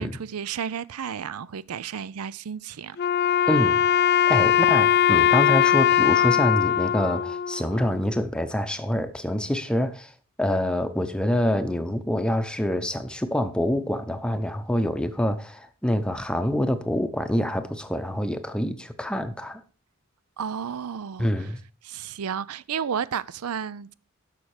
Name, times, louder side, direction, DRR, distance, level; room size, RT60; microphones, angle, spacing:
voice 1, 0.0-3.0 3.2-3.4 4.3-4.5 20.4-21.5 21.8-23.9, right 7 dB, 90° right, 0.5 m, -32 dB
Wind instrument woodwind instrument, 3.0-8.1, left 9 dB, 45° left, 0.4 m, -21 dB
voice 2, 3.5-3.8 4.3-10.1 10.4-19.6 21.2-21.6, equal, 5° left, 0.7 m, -26 dB
11.5 x 6.5 x 4.8 m
head